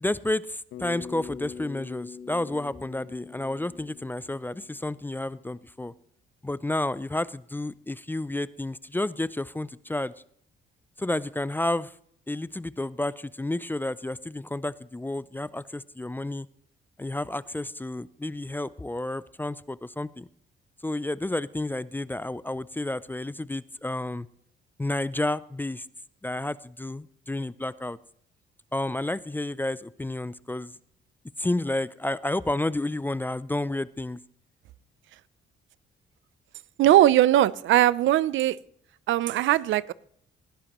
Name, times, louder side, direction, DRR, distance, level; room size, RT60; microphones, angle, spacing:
voice 1, 0.0-5.9 6.4-10.1 11.0-11.9 12.3-16.5 17.0-20.3 20.8-24.3 24.8-25.9 26.2-28.0 28.7-30.7 31.4-34.2, left 1 dB, 10° left, 0.4 m, -31 dB
Bass guitar, 0.7-5.1, left 6 dB, 85° left, 1.2 m, -43 dB
voice 2, 36.8-38.6 39.1-39.9, right 13 dB, 75° right, 0.5 m, -20 dB
18.0 x 11.0 x 3.0 m
cardioid pair, 90°, 20 cm